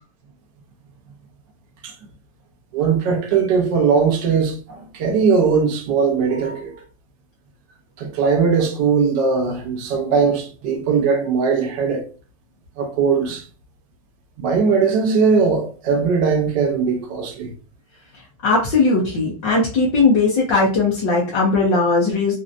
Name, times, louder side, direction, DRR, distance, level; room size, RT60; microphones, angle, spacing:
voice 1, 2.7-6.7 8.0-12.0 12.8-13.4 14.4-17.5, right 5 dB, 35° right, 0.5 m, -19 dB
voice 2, 18.4-22.3, left 3 dB, 25° left, 0.4 m, -18 dB
2.6 x 2.1 x 2.5 m
supercardioid pair, 175°, 19 cm